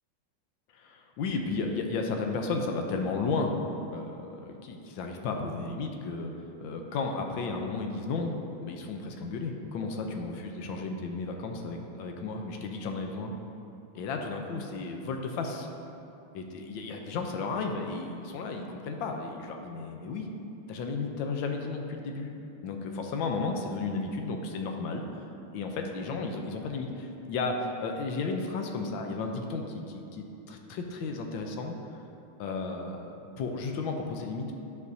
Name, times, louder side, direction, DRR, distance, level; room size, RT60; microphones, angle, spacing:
voice 1, 0.7-3.5 3.9-6.3 6.6-8.3 8.6-13.3 13.9-15.7 16.3-20.3 20.7-22.3 22.6-25.0 25.5-31.7 32.4-34.5, left 4 dB, 75° left, 3 dB, 1.4 m, -33 dB
11.5 x 5.1 x 2.7 m, 2.8 s
omnidirectional pair, 2.2 m